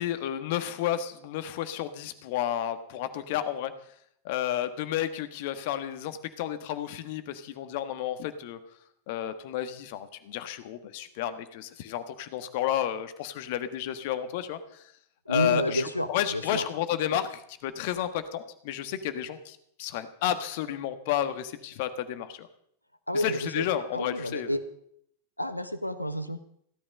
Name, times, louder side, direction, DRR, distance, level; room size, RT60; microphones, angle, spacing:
voice 1, 0.0-3.7 4.2-8.6 9.1-14.9 15.3-15.8 16.1-22.5 23.1-24.5, left 11 dB, 50° left, 11 dB, 1.5 m, -31 dB
voice 2, 15.2-16.7 23.1-23.7 23.9-24.6 25.4-26.4, equal, 90° left, 11 dB, 1.2 m, -30 dB
16.5 x 12.5 x 5.4 m, 0.69 s
figure-of-eight pair, 90°, 0 cm